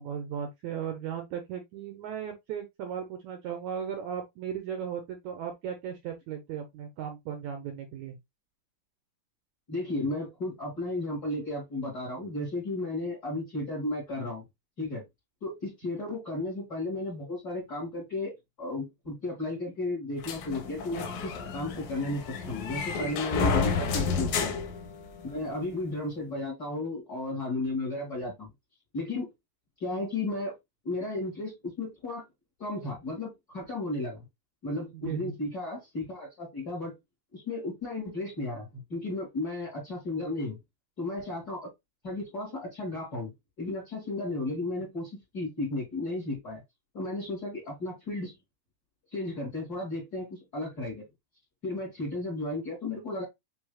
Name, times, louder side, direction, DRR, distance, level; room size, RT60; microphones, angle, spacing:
voice 1, 0.0-8.2 23.9-24.1 34.9-35.3, right 8 dB, 80° right, 1.7 m, -36 dB
voice 2, 9.7-14.4 14.8-15.0 15.4-24.5 25.2-28.5 28.9-29.3 29.8-30.5 30.8-32.2 32.6-34.2 34.6-36.9 37.3-40.6 41.0-41.7 42.0-43.3 43.6-46.6 46.9-48.3 49.1-51.0 51.6-53.2, left 2 dB, 35° left, 1.7 m, -34 dB
sound 1, 20.2-25.5, left 5 dB, 70° left, 2.0 m, -31 dB
6.0 x 3.1 x 2.3 m
omnidirectional pair, 4.1 m